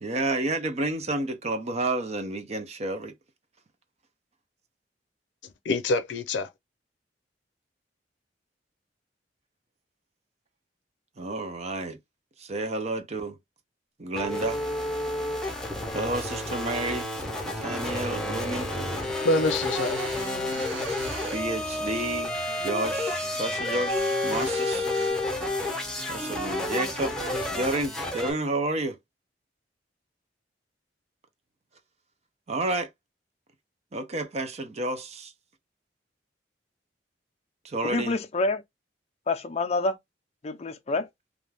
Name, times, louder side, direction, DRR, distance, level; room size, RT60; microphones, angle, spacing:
voice 1, 0.0-3.1 11.2-12.0 12.4-13.4 14.0-14.6 15.9-17.1 17.6-18.7 21.3-22.4 22.6-24.9 26.1-27.2 27.5-29.0 32.5-32.9 33.9-35.3 37.6-38.2, right 2 dB, 35° right, 0.6 m, -30 dB
voice 2, 5.7-6.5 18.8-20.0, left 2 dB, 85° left, 0.5 m, -26 dB
sound 1, 14.2-28.3, left 1 dB, 5° left, 0.7 m, -30 dB
sound 2, 18.6-27.9, right 1 dB, 55° right, 1.1 m, -47 dB
sound 3, 18.8-21.4 21.9-25.1, right 6 dB, 85° right, 0.5 m, -43 dB
voice 3, 37.8-38.6 39.3-40.0 40.4-41.1, left 3 dB, 35° left, 0.4 m, -27 dB
2.5 x 2.3 x 3.3 m
head